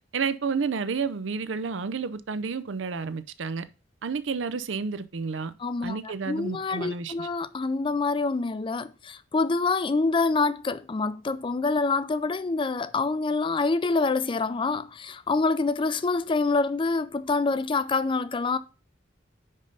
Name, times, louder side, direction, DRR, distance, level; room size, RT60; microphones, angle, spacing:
voice 1, 0.1-3.6 4.0-5.5 5.8-7.3, right 5 dB, 80° right, 0.6 m, -30 dB
voice 2, 5.6-18.6, left 3 dB, 25° left, 0.4 m, -26 dB
5.3 x 5.3 x 5.3 m
head